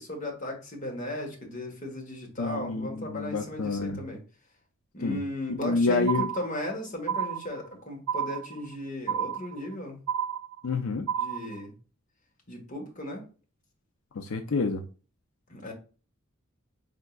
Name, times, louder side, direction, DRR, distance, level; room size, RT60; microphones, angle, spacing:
voice 1, 0.0-4.2 4.9-10.0 11.1-11.7 12.5-13.2 15.5-15.7, left 1 dB, 35° left, 1 dB, 1.3 m, -36 dB
voice 2, 2.4-4.0 5.0-5.2 5.6-6.3 10.6-11.1 14.1-14.8, left 3 dB, 80° left, 5 dB, 0.5 m, -28 dB
sound 1, 6.1-6.7 7.1-7.7 8.1-8.7 9.1-9.7 10.1-10.7 11.1-11.6, right 8 dB, 90° right, 0.6 m, -30 dB
4.5 x 3.6 x 2.3 m, 0.36 s
head